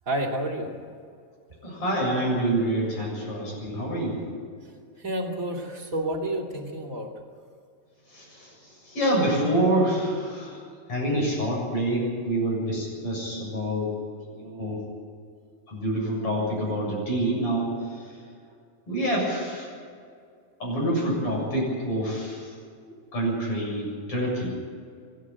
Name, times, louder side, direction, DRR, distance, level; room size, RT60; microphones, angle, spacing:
voice 1, 0.1-0.7 5.0-7.1, right 1 dB, 25° right, 0 dB, 2.7 m, -30 dB
voice 2, 1.6-4.2 8.1-8.5 8.8-10.6 10.9-13.9 14.3-14.8 15.7-18.0 18.9-19.7 20.6-22.5 23.1-24.5, right 1 dB, 40° left, -2 dB, 8.3 m, -27 dB
24.5 x 11.5 x 9.0 m, 2.2 s
omnidirectional pair, 3.9 m